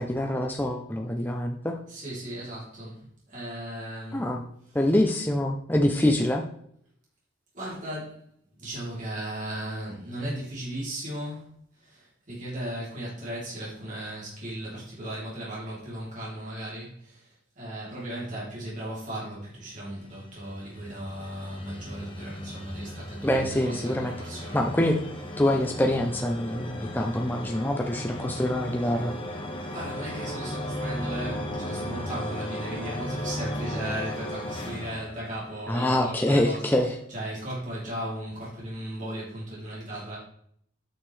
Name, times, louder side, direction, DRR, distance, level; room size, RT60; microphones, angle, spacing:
voice 1, 0.0-1.7 4.1-4.4 4.7-6.4 23.2-24.1 24.5-25.0 25.4-29.1 35.7-36.9, left 1 dB, 10° left, 1 dB, 0.6 m, -25 dB
voice 2, 1.8-4.3 4.6-4.9 7.5-8.2 8.6-11.5 11.7-24.9 29.7-40.2, right 1 dB, 40° right, -6 dB, 3.3 m, -36 dB
sound 1, 19.9-36.0, left 1 dB, 25° left, 1.3 m, -36 dB
8.8 x 6.6 x 3.3 m, 0.65 s
head